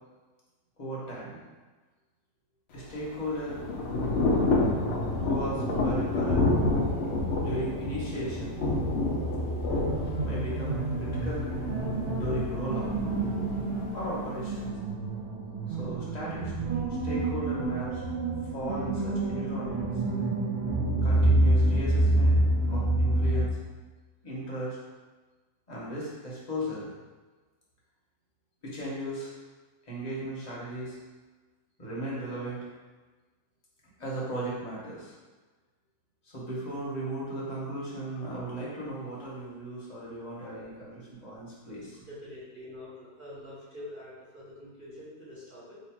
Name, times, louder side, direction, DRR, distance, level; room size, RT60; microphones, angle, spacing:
voice 1, 0.8-1.4 2.7-3.6 5.2-6.5 7.4-8.6 10.2-11.5 12.1-13.0 13.9-14.7 15.7-16.5 17.0-18.0 18.5-19.9 21.0-22.4 22.7-23.6 24.2-24.8 25.7-26.9 28.6-29.3 29.9-31.0 31.8-32.6 34.0-35.1 36.3-42.0, right 1 dB, 30° left, -6 dB, 0.9 m, -36 dB
Thunder / Rain, 2.8-14.7, left 2 dB, 65° left, 0.6 m, -29 dB
sound 1, 4.5-23.5, right 2 dB, 55° right, 0.5 m, -29 dB
voice 2, 42.0-45.8, left 1 dB, 35° right, -11 dB, 1.6 m, -45 dB
3.1 x 2.7 x 4.3 m, 1.3 s
omnidirectional pair, 1.6 m